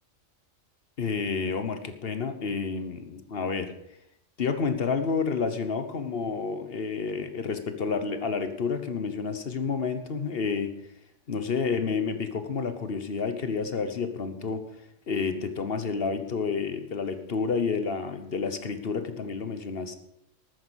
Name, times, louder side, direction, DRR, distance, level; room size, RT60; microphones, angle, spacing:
voice 1, 1.0-3.7 4.4-10.8 11.3-14.7 15.1-20.0, left 5 dB, 55° left, 10 dB, 1.3 m, -30 dB
13.0 x 9.5 x 6.3 m, 0.80 s
omnidirectional pair, 1.2 m